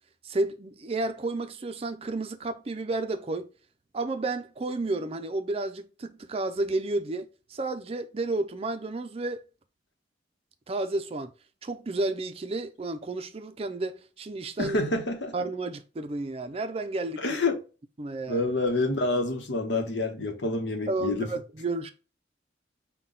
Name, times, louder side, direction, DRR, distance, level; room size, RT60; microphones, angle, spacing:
voice 1, 0.2-3.5 3.9-9.4 10.7-11.3 11.6-14.8 15.3-17.4 18.0-18.4 20.9-21.9, right 2 dB, 35° right, 0.4 m, -31 dB
voice 2, 14.6-15.3 17.2-17.6 18.3-21.3, left 2 dB, 80° left, 1.0 m, -27 dB
5.6 x 2.2 x 3.7 m
head